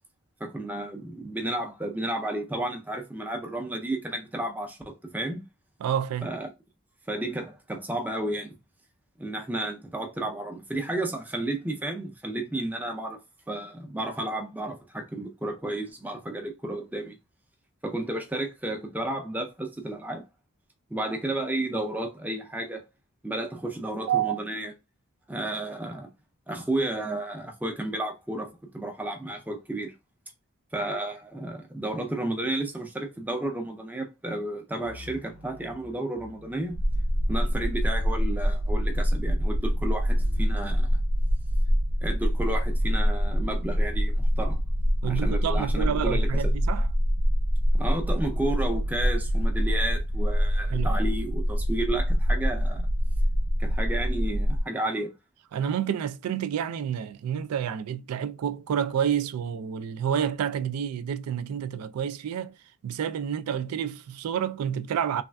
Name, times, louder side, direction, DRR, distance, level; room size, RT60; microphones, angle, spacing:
voice 1, 0.4-5.4 6.2-6.5 7.1-8.6 9.2-13.2 13.5-17.2 17.8-20.2 20.9-22.8 23.2-24.7 25.3-26.1 26.5-29.9 30.7-36.8 37.3-41.0 42.0-44.6 45.0-46.5 47.7-52.9 53.6-55.1, right 1 dB, 5° right, 0.5 m, -32 dB
voice 2, 5.8-6.3 24.1-24.4 45.0-46.9 50.7-51.0 55.5-62.6 62.8-65.2, right 8 dB, 90° right, 0.3 m, -29 dB
sound 1, 34.8-37.9 38.2-40.7, left 3 dB, 65° left, 0.6 m, -47 dB
sound 2, 36.7-54.6, equal, 65° right, 0.7 m, -25 dB
3.2 x 2.4 x 2.2 m
head